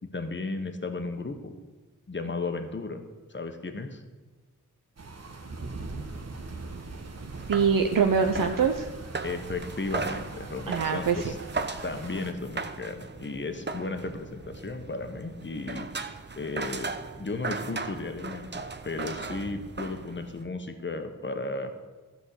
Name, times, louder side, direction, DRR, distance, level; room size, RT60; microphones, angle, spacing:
voice 1, 0.0-1.5 2.1-3.0 3.3-4.0 9.2-11.4 11.8-15.9 16.4-21.7, left 3 dB, 35° left, 7 dB, 1.2 m, -34 dB
sound 1, 5.0-12.3, right 3 dB, 50° right, 1.1 m, -41 dB
sound 2, 5.6-20.4, right 4 dB, 30° right, 0.7 m, -38 dB
voice 2, 7.5-8.9 10.7-11.3, right 6 dB, 70° right, 5 dB, 0.7 m, -24 dB
13.0 x 4.6 x 8.4 m, 1.3 s
wide cardioid pair, 75°, 34 cm